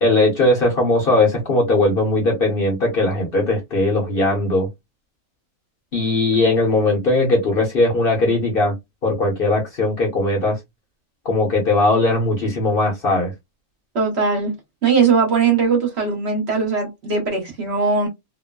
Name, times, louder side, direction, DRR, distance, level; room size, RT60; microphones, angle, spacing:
voice 1, 0.0-4.7 5.9-8.7 9.0-10.6 11.2-13.3, left 2 dB, 50° left, 0.8 m, -19 dB
voice 2, 13.9-14.5 14.8-18.1, right 5 dB, 55° right, 1.0 m, -19 dB
2.9 x 2.0 x 2.2 m
omnidirectional pair, 1.5 m